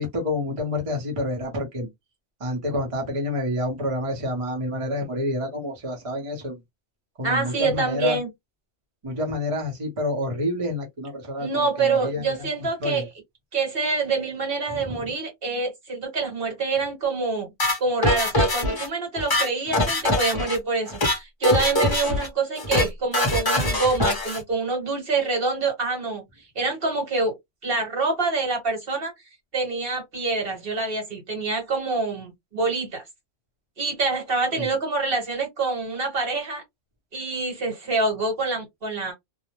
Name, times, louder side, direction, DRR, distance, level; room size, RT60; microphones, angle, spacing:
voice 1, 0.0-1.9 2.4-6.6 7.2-8.2 9.0-12.5 12.8-13.1 14.7-15.1 19.7-19.9 34.6-34.7, left 1 dB, 30° right, 0.7 m, -28 dB
voice 2, 7.2-8.3 11.4-13.0 13.5-17.5 17.8-26.2 26.5-27.3 27.6-29.1 29.5-33.0 33.8-36.6 37.1-39.1, right 3 dB, 50° right, 1.3 m, -26 dB
sound 1, 17.6-18.9 19.2-20.6 20.9-21.2 21.4-22.3 22.6-22.9 23.1-24.4, left 1 dB, 25° left, 0.6 m, -23 dB
2.4 x 2.1 x 2.9 m
omnidirectional pair, 1.2 m